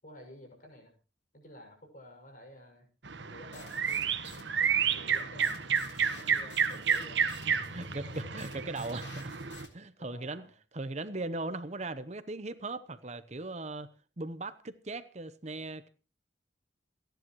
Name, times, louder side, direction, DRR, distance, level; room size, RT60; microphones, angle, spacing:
voice 1, 0.0-0.9 1.3-2.9 3.3-5.6 6.2-7.2 7.5-8.3 10.0-10.5, left 1 dB, 45° left, 6.1 m, -52 dB
sound 1, 3.0-9.6, right 7 dB, 80° right, 1.3 m, -31 dB
sound 2, 3.5-9.7, left 5 dB, 75° left, 3.7 m, -54 dB
voice 2, 7.5-9.2 9.7-13.9 14.2-15.9, right 2 dB, 40° right, 0.9 m, -39 dB
28.5 x 10.5 x 3.1 m
head